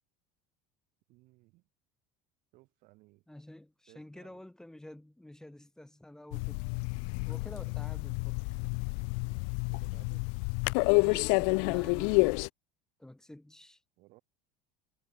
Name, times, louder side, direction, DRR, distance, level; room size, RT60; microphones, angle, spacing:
voice 1, 1.1-1.7 2.5-3.2 3.9-4.4 9.7-10.3 14.0-14.2, right 22 dB, 60° right, 5.2 m, -60 dB
voice 2, 3.3-6.6 7.2-8.4 10.9-12.4 13.0-13.8, left 1 dB, 5° left, 3.6 m, -49 dB
sound 1, 6.3-12.5, left 40 dB or more, 75° left, 0.7 m, -29 dB
cardioid pair, 140°, 15 cm